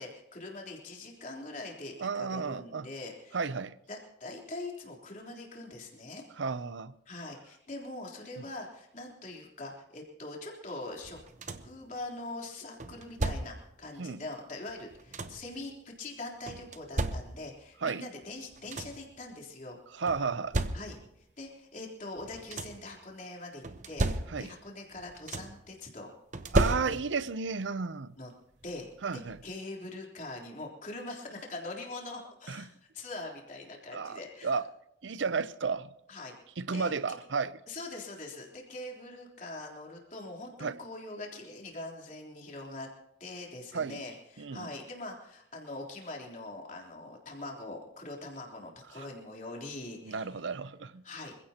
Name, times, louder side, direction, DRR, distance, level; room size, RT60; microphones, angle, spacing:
voice 1, 0.0-3.4 3.9-6.2 7.1-11.2 11.6-19.8 20.7-21.0 21.4-24.1 24.4-26.1 26.8-27.0 28.2-28.3 28.6-28.9 29.1-34.6 36.1-36.3 36.7-37.2 37.7-42.9 43.2-50.3 51.0-51.4, left 2 dB, 40° left, 3.5 m, -43 dB
voice 2, 2.0-2.9 3.3-3.8 6.4-6.9 14.0-14.2 17.8-18.0 19.9-20.6 24.3-24.5 26.5-28.1 29.0-29.4 32.5-32.6 33.9-34.6 35.0-35.9 36.6-37.5 40.6-40.8 43.7-44.0 44.4-44.7 49.0-49.1 50.0-51.0, right 5 dB, 80° right, 0.6 m, -33 dB
sound 1, 11.0-11.8 12.8-13.8 14.7-15.6 16.5-17.7 18.2-18.3 18.5-19.1 20.1-21.2 22.2-22.9 23.6-24.7 24.9-25.7 26.3-27.3 28.6-28.7 29.2-29.4, right 2 dB, 40° right, 0.9 m, -34 dB
26.5 x 16.0 x 2.9 m
head